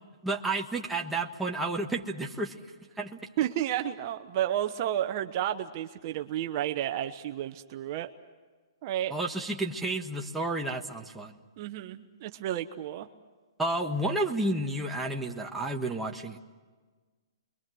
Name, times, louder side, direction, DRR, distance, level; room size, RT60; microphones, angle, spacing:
voice 1, 0.2-2.6 3.0-3.2 9.1-11.3 13.6-16.4, right 2 dB, 5° right, 0 dB, 1.4 m, -31 dB
voice 2, 3.4-8.1 8.8-9.1 11.6-13.1, right 11 dB, 40° right, 7 dB, 1.0 m, -31 dB
29.5 x 23.0 x 6.3 m, 1.4 s
hypercardioid pair, 155°, 3 cm